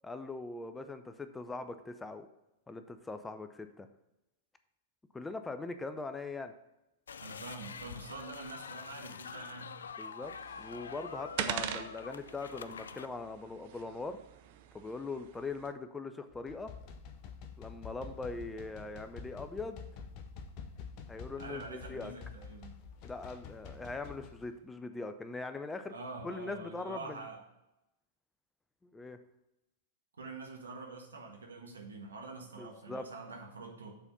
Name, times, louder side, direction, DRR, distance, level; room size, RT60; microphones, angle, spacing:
voice 1, 0.0-2.3 2.7-3.9 5.1-6.5 10.0-10.3 10.6-14.2 14.7-16.7 17.6-19.8 21.1-22.1 23.0-25.9 26.2-27.2 28.8-29.2 32.6-33.0, left 3 dB, 10° left, 9 dB, 0.5 m, -41 dB
sound 1, 7.1-13.1, left 6 dB, 75° left, 0.3 m, -46 dB
voice 2, 7.2-9.8 21.4-22.8 25.9-27.4 30.2-34.0, right 3 dB, 80° right, 2 dB, 1.5 m, -46 dB
Marble drop, 10.2-15.7, right 10 dB, 55° right, 0.5 m, -43 dB
sound 2, 16.3-24.5, left 5 dB, 45° left, 0.8 m, -48 dB
6.9 x 4.3 x 5.5 m, 0.90 s
figure-of-eight pair, 100°, 0 cm